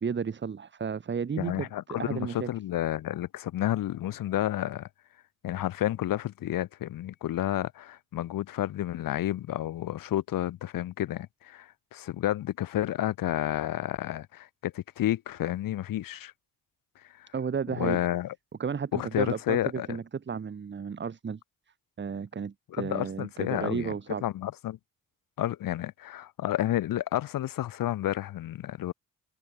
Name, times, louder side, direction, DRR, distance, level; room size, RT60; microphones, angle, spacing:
voice 1, 0.0-1.7 2.0-2.5 17.3-18.0 18.6-21.4 22.0-24.2, right 6 dB, 35° right, 2.8 m, -33 dB
voice 2, 1.4-4.9 5.4-16.3 17.2-17.3 17.8-18.3 18.9-20.0 22.7-23.9 24.2-24.8 25.4-28.9, left 13 dB, 85° left, 4.1 m, -30 dB
cardioid pair, 130°, 33 cm